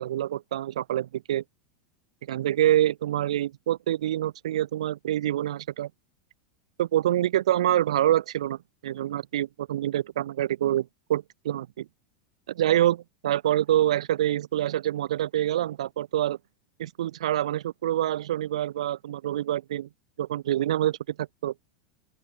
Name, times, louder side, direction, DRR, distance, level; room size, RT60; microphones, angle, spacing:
voice 1, 0.0-1.4 2.3-5.9 6.8-11.8 12.5-16.4 16.8-19.9 20.2-21.5, right 12 dB, 80° right, 1.7 m, -26 dB
open air
hypercardioid pair, 110°, 3 cm